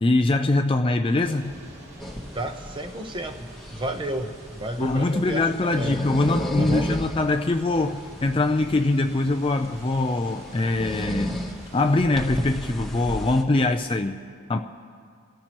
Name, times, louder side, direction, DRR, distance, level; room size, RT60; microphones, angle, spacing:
voice 1, 0.0-1.6 4.8-11.4 11.7-14.2 14.5-14.6, left 2 dB, 25° left, 5 dB, 0.4 m, -23 dB
Thunder / Rain, 1.2-12.0, right 1 dB, 85° right, 4.3 m, -45 dB
sound 1, 2.0-13.4, equal, ahead, 1.1 m, -35 dB
voice 2, 2.3-6.0 6.6-7.0, right 1 dB, 20° right, 6 dB, 0.8 m, -32 dB
29.0 x 14.5 x 3.0 m, 2.3 s
head